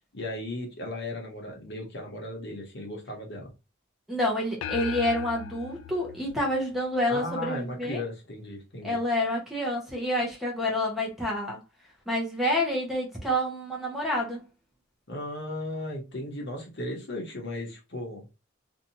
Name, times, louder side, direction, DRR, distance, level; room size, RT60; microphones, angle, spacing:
voice 1, 0.1-3.5 7.1-9.0 15.1-18.2, left 1 dB, 55° left, 0.9 m, -36 dB
voice 2, 4.1-8.0 8.8-11.6 12.1-14.4, left 1 dB, ahead, 0.6 m, -28 dB
sound 1, 4.6-7.3, left 8 dB, 80° left, 0.3 m, -39 dB
2.6 x 2.3 x 2.8 m
head